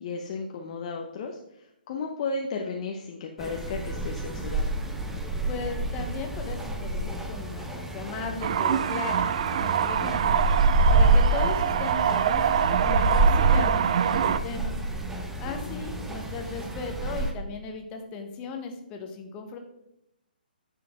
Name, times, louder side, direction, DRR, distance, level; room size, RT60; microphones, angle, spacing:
voice 1, 0.0-1.4 1.9-4.6 15.4-15.9, left 4 dB, 40° left, 2 dB, 0.9 m, -34 dB
sound 1, 3.4-17.3, right 2 dB, 5° right, 0.8 m, -27 dB
voice 2, 5.5-10.3 10.9-14.7 15.4-19.6, left 4 dB, 20° left, 4 dB, 1.3 m, -36 dB
Lurking in the Dark, 8.4-14.4, right 9 dB, 40° right, 0.4 m, -25 dB
9.6 x 6.8 x 3.7 m, 0.83 s
figure-of-eight pair, 130°, 5 cm